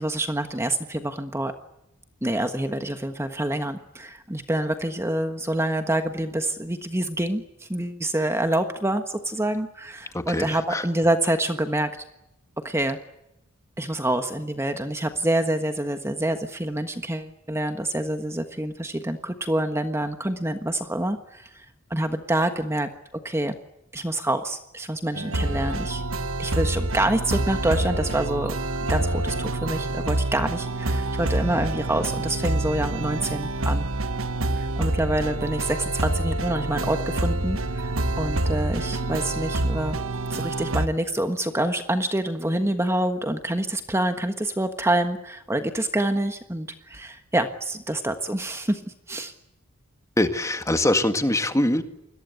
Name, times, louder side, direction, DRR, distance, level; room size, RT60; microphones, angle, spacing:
voice 1, 0.0-1.5 2.2-11.9 12.6-13.0 13.8-21.6 21.9-22.9 23.2-23.6 23.9-26.0 26.4-28.6 28.9-33.9 34.5-40.0 40.3-48.8 49.1-49.3, right 1 dB, 10° right, 7 dB, 1.4 m, -26 dB
voice 2, 10.1-10.8 50.2-51.8, left 1 dB, 15° left, 8 dB, 1.9 m, -23 dB
sound 1, 25.1-40.9, right 2 dB, 65° right, 1.3 m, -27 dB
28.5 x 21.5 x 8.2 m, 0.86 s
head